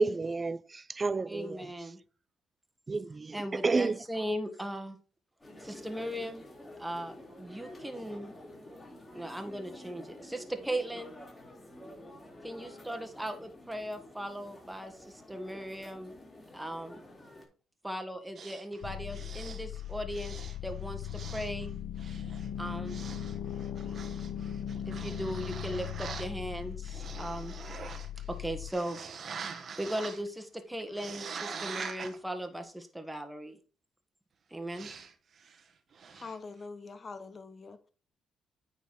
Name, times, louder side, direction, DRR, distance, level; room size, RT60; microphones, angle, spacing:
voice 1, 0.0-1.6 2.9-4.0, right 3 dB, 30° right, 0.3 m, -30 dB
voice 2, 1.3-2.0 3.3-5.0 5.6-6.4 6.8-8.4 9.1-11.1 12.4-16.2 16.5-17.0 17.8-21.7 22.6-23.0 24.9-27.5 28.3-29.0 29.8-33.6 34.5-34.9, right 1 dB, 5° right, 1.4 m, -38 dB
sound 1, 5.4-17.4, left 1 dB, 20° left, 3.1 m, -50 dB
sound 2, 18.4-20.7 21.0-21.7 22.0-26.3 26.8-28.3 28.7-30.3 30.9-32.2 34.7-35.1 35.4-35.6 35.9-36.4, right 6 dB, 50° right, 1.1 m, -44 dB
sound 3, 18.8-28.7, left 10 dB, 80° left, 0.6 m, -39 dB
voice 3, 36.1-37.8, left 4 dB, 35° left, 1.0 m, -44 dB
9.1 x 4.1 x 4.7 m
cardioid pair, 90°, 0 cm